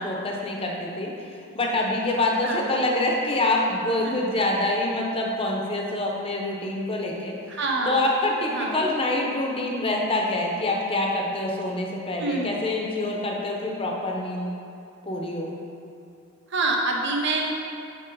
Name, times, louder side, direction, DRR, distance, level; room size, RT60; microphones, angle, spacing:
voice 1, 0.0-7.4 7.9-14.5 15.1-15.5, left 2 dB, 25° left, -1 dB, 0.8 m, -26 dB
voice 2, 2.4-2.7 4.0-4.2 7.5-8.0 8.5-8.8 12.2-12.6 16.5-17.5, right 2 dB, 55° right, 0 dB, 0.9 m, -26 dB
7.6 x 4.6 x 4.6 m, 2.5 s
head